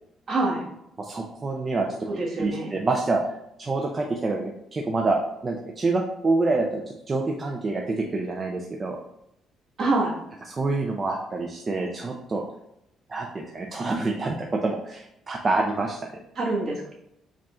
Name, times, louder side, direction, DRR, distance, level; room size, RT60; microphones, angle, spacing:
voice 1, 0.3-0.7 2.1-2.8 9.8-10.1 16.3-16.8, right 2 dB, 50° right, -4 dB, 1.5 m, -25 dB
voice 2, 1.0-2.1 2.4-3.2 3.6-9.0 10.5-12.4 13.1-16.0, right 3 dB, 25° right, 1 dB, 0.4 m, -27 dB
4.8 x 2.4 x 4.3 m, 0.79 s
cardioid pair, 130°, 0 cm